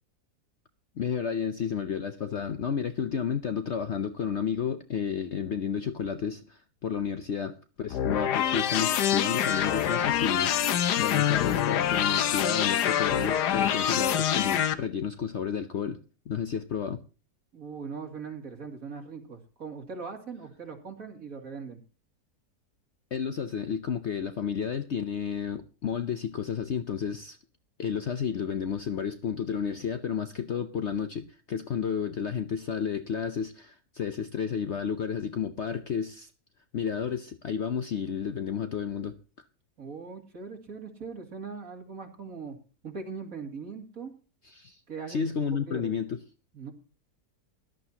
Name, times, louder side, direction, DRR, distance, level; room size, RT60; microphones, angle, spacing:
voice 1, 1.0-16.0 16.3-17.0 23.1-27.4 27.8-36.3 36.7-39.2 44.4-44.8 45.1-46.2, left 7 dB, 55° left, 10 dB, 0.8 m, -31 dB
sound 1, 7.9-14.7, left 10 dB, 80° left, 1.4 m, -25 dB
voice 2, 17.5-21.8 39.8-42.6 42.8-44.1 44.9-45.3 45.7-45.9 46.5-46.7, right 5 dB, 55° right, 3 dB, 2.9 m, -40 dB
17.5 x 11.5 x 2.9 m, 0.35 s
omnidirectional pair, 1.8 m